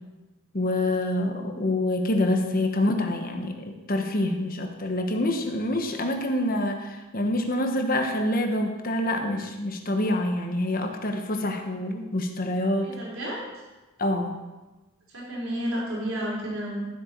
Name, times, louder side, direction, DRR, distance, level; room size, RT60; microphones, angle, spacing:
voice 1, 0.5-12.9 14.0-14.4, left 1 dB, 40° left, 4 dB, 1.2 m, -26 dB
voice 2, 12.8-13.4 15.1-16.8, equal, 70° right, -5 dB, 4.2 m, -31 dB
13.0 x 8.0 x 4.5 m, 1.1 s
head